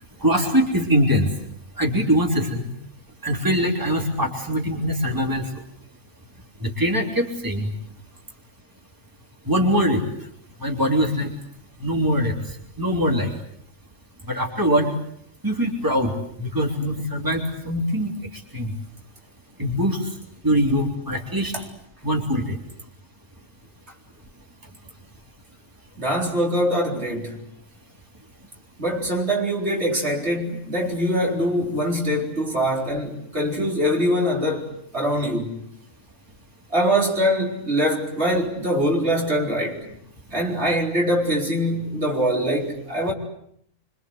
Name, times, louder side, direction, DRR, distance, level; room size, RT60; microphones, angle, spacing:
voice 1, 0.2-1.3 1.8-2.7 3.2-5.4 6.6-7.7 9.5-10.0 10.6-11.3 11.8-12.3 12.8-13.3 14.3-14.9 15.4-16.1 16.4-18.1 18.5-18.7 19.6-20.0 20.4-21.5 22.0-22.6, equal, 15° right, 3.6 m, -22 dB
voice 2, 26.0-27.4 28.8-35.5 36.7-39.8 40.3-43.1, equal, 55° right, 4.4 m, -23 dB
26.5 x 25.0 x 8.1 m
omnidirectional pair, 1.3 m